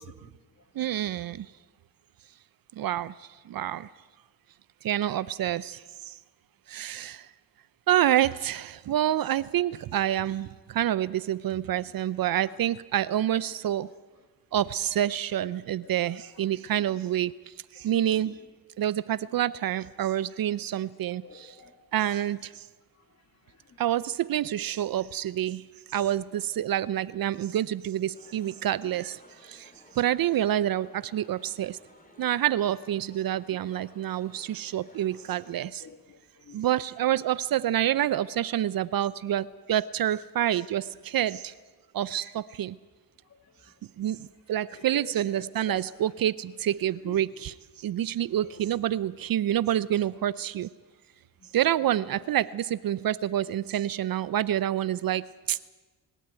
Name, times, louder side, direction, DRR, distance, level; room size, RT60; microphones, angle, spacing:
voice 1, 0.0-1.0 11.7-11.8 12.5-12.6 13.4-13.6 14.1-14.2 15.5-17.0 17.8-18.4 19.3-19.4 21.2-22.1 22.9-23.8 28.8-29.0 29.9-30.0 33.4-33.6 34.5-36.7 43.2-43.8 44.1-44.2 44.7-45.9 46.6-47.5 48.3-48.7 51.4-52.3, left 5 dB, 40° left, 2.4 m, -51 dB
voice 2, 0.8-1.5 2.8-3.1 3.5-3.9 4.8-5.8 6.7-7.2 7.9-10.5 10.7-13.9 14.5-17.3 17.8-18.4 18.8-21.5 21.9-22.4 23.8-25.6 25.9-29.2 29.5-29.6 30.0-31.8 32.2-35.8 36.5-41.5 41.9-42.8 44.0-44.2 44.5-47.5 47.8-50.7 51.5-55.6, right 11 dB, 55° right, 0.6 m, -27 dB
sound 1, 28.1-35.6, left 1 dB, 20° left, 3.1 m, -56 dB
26.5 x 13.0 x 9.0 m
cardioid pair, 85°, 43 cm